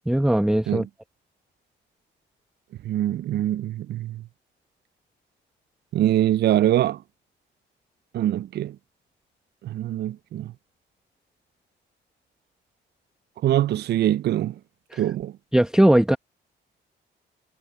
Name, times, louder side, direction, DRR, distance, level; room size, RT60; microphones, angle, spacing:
voice 1, 0.1-0.9 14.9-15.0 15.5-16.2, right 1 dB, 5° right, 0.8 m, -19 dB
voice 2, 2.8-4.2 5.9-7.0 8.1-8.8 9.6-10.5 13.4-14.5 15.0-15.3, right 12 dB, 55° right, 0.4 m, -23 dB
cardioid pair, 90°, 20 cm